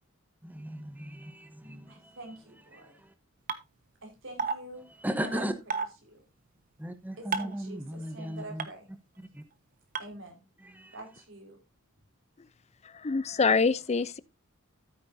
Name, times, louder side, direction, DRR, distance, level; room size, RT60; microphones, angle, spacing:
voice 1, 0.4-2.2 2.8-3.1 5.0-5.5 6.8-8.6 9.3-9.4 10.6-10.9, equal, 10° right, 1.0 m, -36 dB
voice 2, 1.9-2.9 4.0-4.8 5.2-6.2 7.2-8.9 10.0-10.4 10.9-11.6, right 2 dB, 65° right, 4.7 m, -46 dB
sound 1, 3.5-3.6 4.4-4.6 5.7-5.9 7.3-7.6 8.6-8.7 10.0-10.1, right 5 dB, 40° right, 1.2 m, -29 dB
voice 3, 13.0-14.2, left 4 dB, 30° left, 0.5 m, -25 dB
13.5 x 8.7 x 2.7 m
head